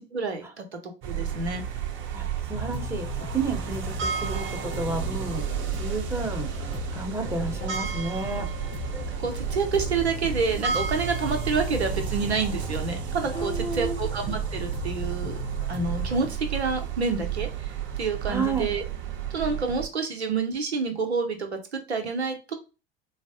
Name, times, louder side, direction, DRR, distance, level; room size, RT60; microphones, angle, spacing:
voice 1, 0.0-1.6 8.9-15.3 15.7-17.7 18.0-18.8 19.3-22.5, right 4 dB, 85° right, 6 dB, 0.8 m, -28 dB
sound 1, 1.0-19.9, right 8 dB, 35° right, 0.8 m, -32 dB
voice 2, 2.1-3.1 3.3-4.4 4.8-5.4 5.8-6.5 6.9-8.5 13.3-14.0 18.3-18.7, right 3 dB, 10° right, 3 dB, 0.9 m, -31 dB
sound 2, 2.5-16.3, left 5 dB, 20° left, 0.5 m, -38 dB
3.9 x 2.0 x 2.7 m, 0.30 s
figure-of-eight pair, 80°, 32 cm